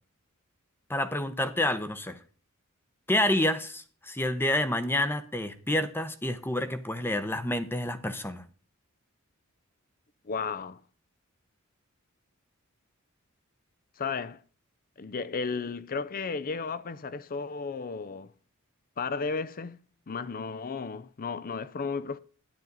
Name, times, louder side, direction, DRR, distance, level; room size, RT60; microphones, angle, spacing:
voice 1, 0.9-2.2 3.1-8.4, left 1 dB, 10° left, 0.8 m, -28 dB
voice 2, 10.2-10.8 14.0-14.4 15.0-18.3 19.0-19.8 20.1-22.2, left 5 dB, 40° left, 0.6 m, -34 dB
12.0 x 10.5 x 4.0 m
head